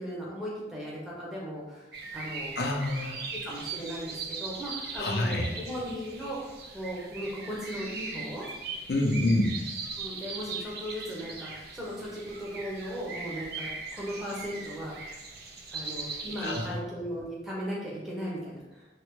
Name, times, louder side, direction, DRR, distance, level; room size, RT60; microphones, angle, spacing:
voice 1, 0.0-2.5 3.3-8.5 10.0-15.2 15.7-18.9, equal, ahead, -6 dB, 0.8 m, -37 dB
sound 1, 1.9-16.7, right 4 dB, 60° right, 0.5 m, -40 dB
voice 2, 2.6-3.2 5.0-5.5 8.9-9.5 16.4-16.8, left 1 dB, 60° left, 1 dB, 0.5 m, -27 dB
3.3 x 2.2 x 3.1 m, 1.1 s
head